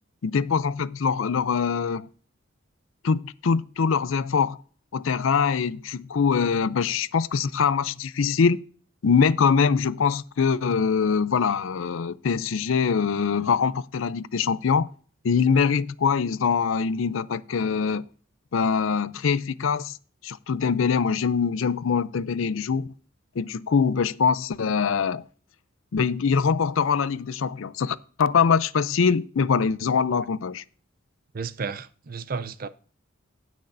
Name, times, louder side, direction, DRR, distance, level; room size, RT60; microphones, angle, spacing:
voice 1, 0.2-2.1 3.0-4.6 4.9-8.6 9.0-14.9 15.2-18.1 18.5-20.0 20.2-22.9 23.4-25.2 25.9-30.6, left 6 dB, 80° left, 0.5 m, -23 dB
voice 2, 31.3-32.7, right 5 dB, 45° right, 0.5 m, -32 dB
18.0 x 6.2 x 2.6 m
head